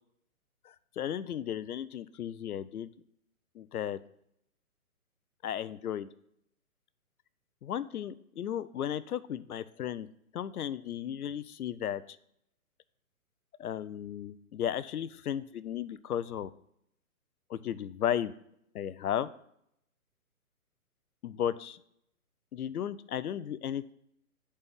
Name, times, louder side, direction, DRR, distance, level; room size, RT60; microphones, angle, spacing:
voice 1, 1.0-2.9 3.6-4.0 5.4-6.1 7.6-10.1 10.3-12.0 13.6-16.5 17.5-18.3 18.7-19.3 21.2-21.8 22.5-23.9, left 10 dB, 80° left, 15 dB, 0.6 m, -34 dB
8.9 x 4.2 x 3.6 m, 0.73 s
hypercardioid pair, 145°, 44 cm